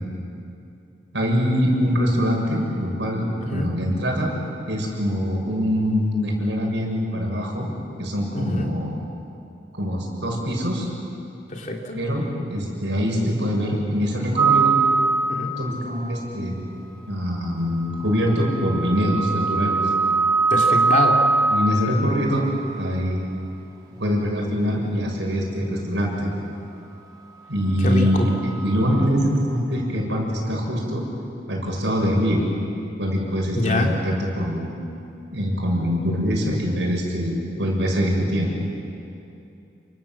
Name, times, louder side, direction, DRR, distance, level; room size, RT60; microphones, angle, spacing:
voice 1, 1.1-4.3 4.7-7.7 8.0-9.0 9.7-10.9 12.0-14.8 15.6-16.5 17.1-19.8 21.5-22.5 22.8-23.2 24.0-26.3 27.5-31.1 31.5-32.4 33.0-34.7 35.3-38.5, equal, 85° right, 0 dB, 7.1 m, -23 dB
voice 2, 8.3-8.7 11.5-12.0 15.3-15.5 20.5-21.2 27.8-28.3 33.5-33.9, left 1 dB, 40° left, 0 dB, 3.3 m, -24 dB
sound 1, 14.4-16.0 18.0-22.3 28.3-29.1, right 4 dB, 20° right, 2.9 m, -22 dB
29.5 x 26.0 x 7.6 m, 2.7 s
head